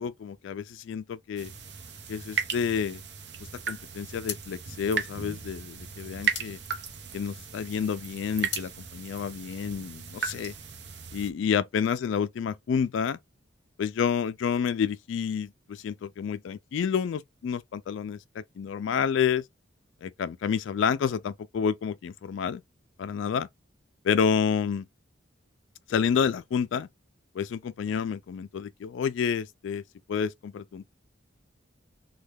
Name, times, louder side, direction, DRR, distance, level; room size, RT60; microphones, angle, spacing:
voice 1, 0.0-1.5 2.1-3.0 3.7-6.6 7.1-10.5 11.1-13.2 13.8-19.4 20.0-22.6 23.0-23.5 24.0-24.9 25.9-26.9 27.3-29.8 30.1-30.9, left 7 dB, 75° left, 0.3 m, -29 dB
sound 1, 1.4-11.3, right 6 dB, 60° right, 0.7 m, -36 dB
sound 2, 4.2-7.6 7.9-8.8, left 8 dB, 60° left, 0.8 m, -40 dB
3.2 x 2.2 x 3.3 m
head